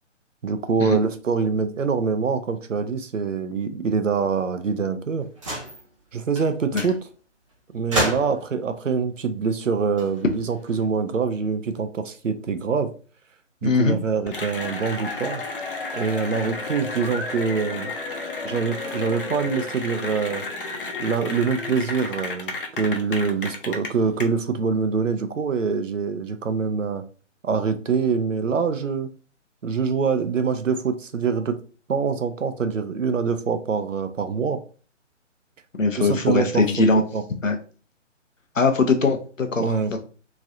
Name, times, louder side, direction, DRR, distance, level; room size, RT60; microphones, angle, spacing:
voice 1, 0.4-5.3 6.1-7.0 7.7-12.9 13.6-15.4 15.9-17.9 18.4-20.4 21.0-27.0 27.4-29.1 29.6-31.6 31.9-34.6 36.0-36.9 37.1-37.2 39.6-40.0, right 5 dB, 80° right, 0.6 m, -25 dB
sound 1, 5.4-5.8 6.4-6.5 6.7-6.9 7.9-8.5 9.8-10.9, right 1 dB, 25° right, 0.7 m, -29 dB
voice 2, 13.6-14.0 35.8-37.0 37.4-37.6 38.6-40.0, left 3 dB, 90° left, 0.7 m, -21 dB
Cheering / Applause, 14.3-24.2, left 3 dB, 45° left, 0.6 m, -32 dB
3.0 x 2.6 x 2.5 m
figure-of-eight pair, 140°, 38 cm